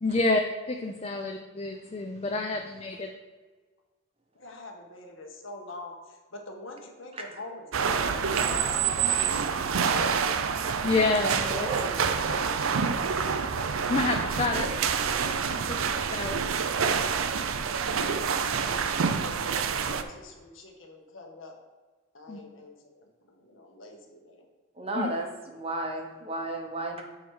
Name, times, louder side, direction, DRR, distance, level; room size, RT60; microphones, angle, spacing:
voice 1, 0.0-3.1 10.8-11.7 13.9-14.7 15.8-16.4 22.3-22.4 24.9-25.1, left 3 dB, 30° left, 3 dB, 0.4 m, -28 dB
voice 2, 4.3-10.3 18.8-21.6 22.1-24.5, left 2 dB, 70° left, 3 dB, 1.2 m, -44 dB
sound 1, 7.7-20.0, right 6 dB, 80° right, 0.5 m, -27 dB
voice 3, 11.4-12.0 24.8-27.0, right 2 dB, 30° right, 2 dB, 0.8 m, -33 dB
7.3 x 4.7 x 4.6 m, 1.4 s
head